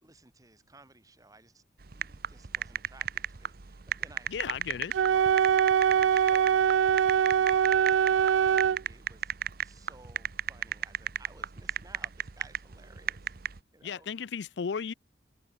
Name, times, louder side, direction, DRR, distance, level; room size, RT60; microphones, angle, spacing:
voice 1, 0.0-1.6 1.9-5.6 5.8-9.3 9.6-14.1, right 2 dB, 20° right, 2.3 m, -57 dB
sound 1, 1.8-13.6, right 9 dB, 55° right, 0.8 m, -34 dB
voice 2, 4.3-4.9 13.8-14.9, left 6 dB, 70° left, 0.5 m, -34 dB
Wind instrument woodwind instrument, 4.9-8.8, right 8 dB, 90° right, 0.3 m, -23 dB
open air
head